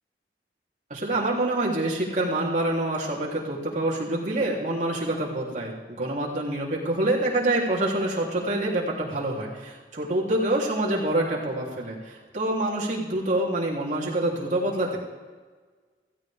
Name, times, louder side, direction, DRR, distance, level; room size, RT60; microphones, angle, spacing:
voice 1, 0.9-15.0, right 1 dB, 45° right, -4 dB, 3.4 m, -26 dB
16.0 x 15.5 x 3.6 m, 1.5 s
head